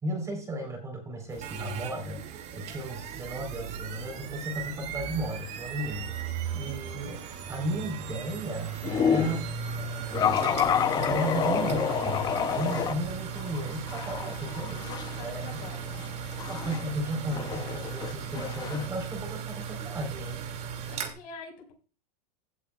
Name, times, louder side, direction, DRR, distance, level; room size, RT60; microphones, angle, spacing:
voice 1, 0.0-6.1 6.5-7.2 7.5-10.6 11.0-14.9 15.2-15.6 16.5-20.4, right 1 dB, 15° right, 3 dB, 3.9 m, -34 dB
sound 1, 1.3-21.1, right 7 dB, 30° right, 2.4 m, -37 dB
voice 2, 6.4-7.0 14.7-15.9 20.9-21.7, left 5 dB, 60° left, 3 dB, 5.5 m, -46 dB
sound 2, 8.8-9.4 10.1-12.9 13.4-18.9, left 7 dB, 20° left, 0.7 m, -29 dB
16.5 x 8.3 x 2.4 m, 0.36 s
supercardioid pair, 150°, 21 cm